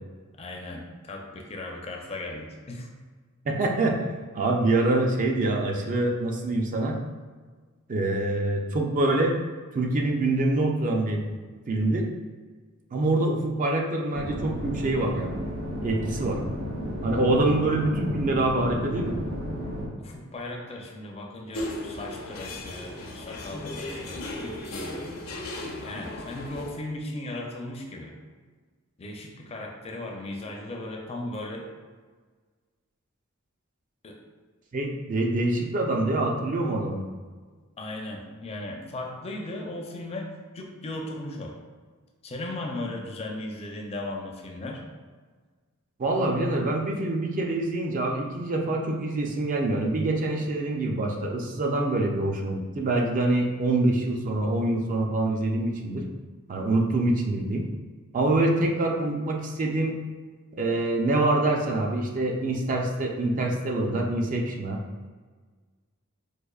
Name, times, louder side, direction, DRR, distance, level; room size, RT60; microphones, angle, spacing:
voice 1, 0.4-2.9 17.3-17.5 20.0-25.0 25.8-28.1 29.0-31.7 34.0-34.2 37.8-41.6 42.2-44.8, left 2 dB, 30° left, 1 dB, 0.4 m, -37 dB
voice 2, 3.5-4.0 4.3-7.0 7.9-9.3 9.7-11.2 11.7-12.1 12.9-15.3 15.8-16.4 17.0-19.1 34.7-37.0 46.0-56.1 56.5-57.7 58.1-60.0 60.6-64.8, right 2 dB, 40° right, 1 dB, 0.4 m, -25 dB
sound 1, 14.1-19.9, equal, 70° right, 0.7 m, -33 dB
sound 2, 21.5-26.7, left 1 dB, 80° left, 0.6 m, -36 dB
4.8 x 2.4 x 2.3 m, 1.5 s
head